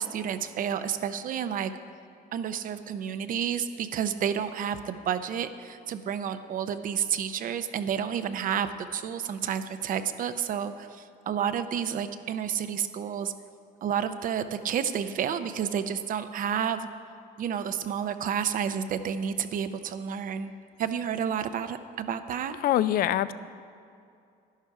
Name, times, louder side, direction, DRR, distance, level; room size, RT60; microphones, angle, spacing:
voice 1, 0.0-1.7 2.3-13.3 13.8-16.9 17.4-20.5 20.8-22.6, right 8 dB, 55° right, 11 dB, 0.6 m, -30 dB
voice 2, 22.6-23.3, left 12 dB, 60° left, 16 dB, 0.4 m, -24 dB
11.5 x 11.0 x 4.8 m, 2.4 s
cardioid pair, 110°, 17 cm